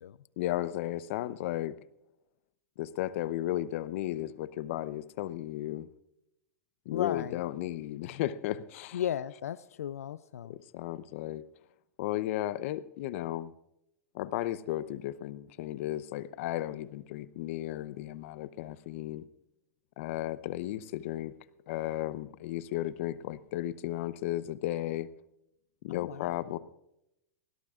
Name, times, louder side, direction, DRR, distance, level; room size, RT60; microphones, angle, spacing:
voice 1, 0.4-1.8 2.8-5.9 6.9-9.0 10.5-11.4 12.0-13.5 14.1-19.2 20.0-21.3 21.7-25.1 25.8-26.6, left 14 dB, 60° left, 0.8 m, -34 dB
voice 2, 6.9-7.4 8.9-10.6 25.9-26.3, left 10 dB, 85° left, 0.4 m, -35 dB
20.0 x 17.5 x 2.5 m
hypercardioid pair, 115°, 8 cm